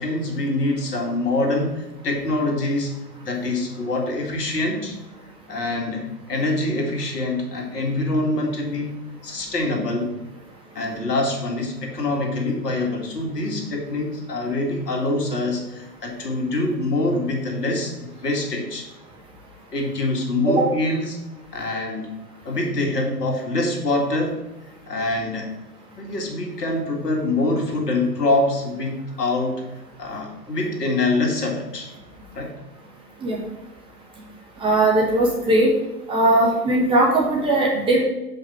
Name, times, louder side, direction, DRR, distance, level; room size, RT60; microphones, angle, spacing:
voice 1, 0.0-2.9 3.2-5.0 5.5-9.0 9.2-10.1 10.7-18.9 19.7-21.2 21.5-22.1 22.4-24.4 24.9-25.5 26.0-29.6 30.0-31.9 32.3-32.5, left 2 dB, 70° left, 1 dB, 2.1 m, -25 dB
voice 2, 34.6-35.7 36.1-38.0, right 2 dB, 10° right, -2 dB, 0.8 m, -19 dB
6.9 x 5.2 x 4.2 m, 0.99 s
hypercardioid pair, 125°, 49 cm